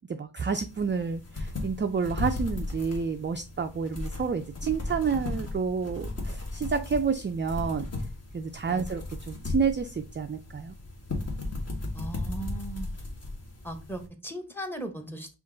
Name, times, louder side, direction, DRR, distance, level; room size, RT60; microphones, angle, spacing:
voice 1, 0.1-7.9 8.3-10.7, right 5 dB, 30° right, 7 dB, 0.3 m, -29 dB
sound 1, 0.7-14.1, left 2 dB, 35° left, 1.3 m, -36 dB
voice 2, 11.9-12.9 13.6-15.3, right 1 dB, 5° left, 7 dB, 0.9 m, -37 dB
5.3 x 2.5 x 3.8 m, 0.31 s
wide cardioid pair, 110°, 42 cm